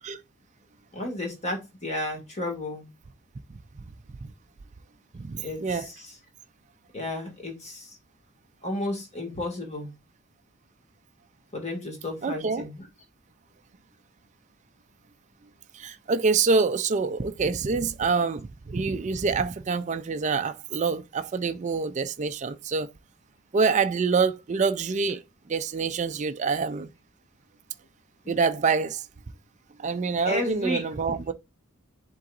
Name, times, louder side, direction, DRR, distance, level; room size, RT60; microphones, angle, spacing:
voice 1, 0.9-2.9 5.4-6.1 6.9-7.9 8.6-9.9 11.5-12.9 30.3-30.8, left 1 dB, 30° left, 1.9 m, -32 dB
voice 2, 5.2-5.9 12.2-12.7 15.7-22.9 23.5-25.2 25.5-26.9 28.3-29.0 29.8-31.3, right 4 dB, 35° right, 0.4 m, -26 dB
10.5 x 3.8 x 2.5 m
head